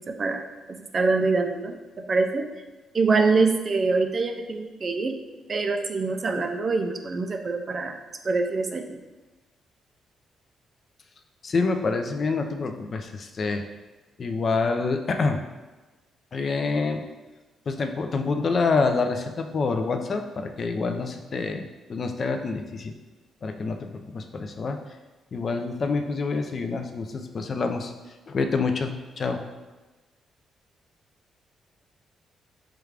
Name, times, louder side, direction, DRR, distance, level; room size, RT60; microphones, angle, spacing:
voice 1, 0.1-1.8 2.1-2.5 2.9-5.2 5.5-8.0 8.2-9.0, right 4 dB, 40° right, 5 dB, 0.4 m, -24 dB
voice 2, 11.4-13.6 14.2-15.4 16.3-17.1 17.7-22.9 23.4-24.8 25.3-27.9 28.3-29.5, left 4 dB, 45° left, 6 dB, 0.4 m, -27 dB
4.8 x 2.3 x 3.2 m, 1.2 s
cardioid pair, 105°, 0 cm